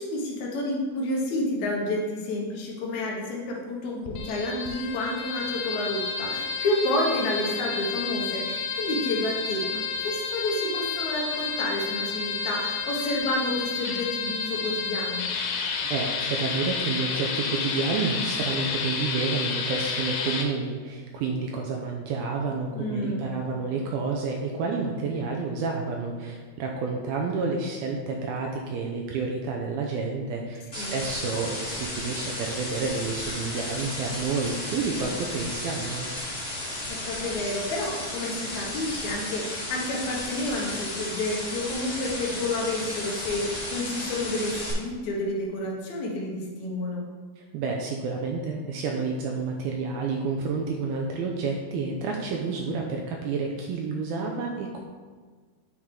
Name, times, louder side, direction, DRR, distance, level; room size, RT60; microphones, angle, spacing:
voice 1, 0.0-15.3 22.7-23.3 30.8-31.0 36.9-47.0, left 1 dB, 65° left, -2 dB, 2.0 m, -30 dB
sound 1, 4.1-20.5, left 5 dB, 85° left, 3.0 m, -30 dB
voice 2, 15.8-36.1 47.4-54.8, right 4 dB, 85° right, 0 dB, 2.2 m, -30 dB
sound 2, 30.7-44.7, left 1 dB, 20° left, 1.2 m, -34 dB
9.7 x 4.7 x 3.8 m, 1.5 s
omnidirectional pair, 4.8 m